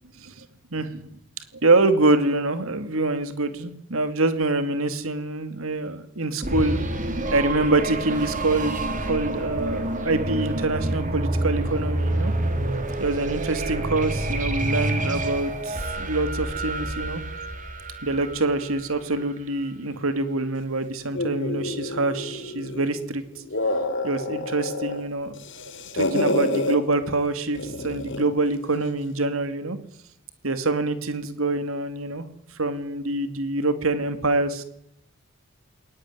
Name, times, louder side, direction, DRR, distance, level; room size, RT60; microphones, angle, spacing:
voice 1, 1.6-6.8 7.3-12.3 13.0-17.2 18.0-23.2 24.0-29.8 30.4-32.3 32.6-34.6, right 2 dB, 75° right, 10 dB, 2.4 m, -25 dB
sound 1, 6.4-19.1, right 1 dB, 40° right, 3.8 m, -28 dB
sound 2, 21.1-22.9 23.3-25.0 25.3-26.8 27.6-28.3, left 2 dB, 60° left, 2.8 m, -28 dB
21.0 x 19.0 x 9.8 m, 0.75 s
head